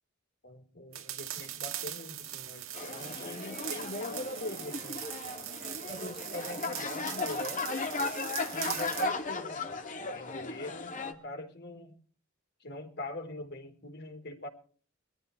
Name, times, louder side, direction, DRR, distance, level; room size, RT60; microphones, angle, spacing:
voice 1, 0.4-5.1 5.9-7.9 8.5-12.0 12.6-14.5, left 1 dB, 55° left, 4 dB, 4.1 m, -42 dB
sound 1, 0.9-9.1, right 12 dB, 75° right, 2.4 m, -41 dB
sound 2, 2.7-11.1, left 3 dB, 40° left, 2.5 m, -36 dB
23.5 x 14.5 x 3.3 m, 0.43 s
head